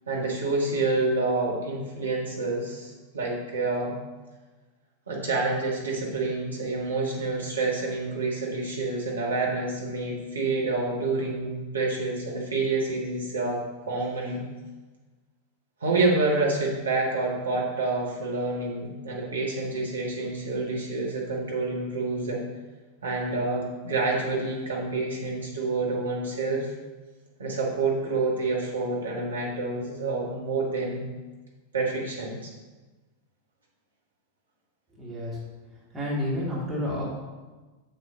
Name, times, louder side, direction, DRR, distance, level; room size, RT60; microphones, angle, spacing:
voice 1, 0.1-3.9 5.1-14.4 15.8-22.4 23.0-26.7 27.4-31.1 31.7-32.5, right 3 dB, 70° right, -3 dB, 1.5 m, -28 dB
voice 2, 35.0-35.4 35.9-37.0, left 1 dB, 10° right, -6 dB, 2.1 m, -30 dB
6.9 x 6.6 x 2.7 m, 1.2 s
figure-of-eight pair, 90°, 0 cm